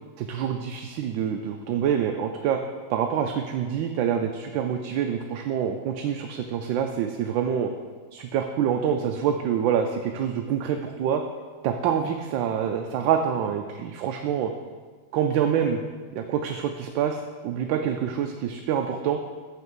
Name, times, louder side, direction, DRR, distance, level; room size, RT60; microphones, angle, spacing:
voice 1, 0.2-2.6 2.9-7.7 8.1-11.2 11.6-14.5 15.1-15.8 16.1-19.2, right 8 dB, 80° right, 5 dB, 1.3 m, -26 dB
7.3 x 5.7 x 6.1 m, 1.5 s
omnidirectional pair, 2.1 m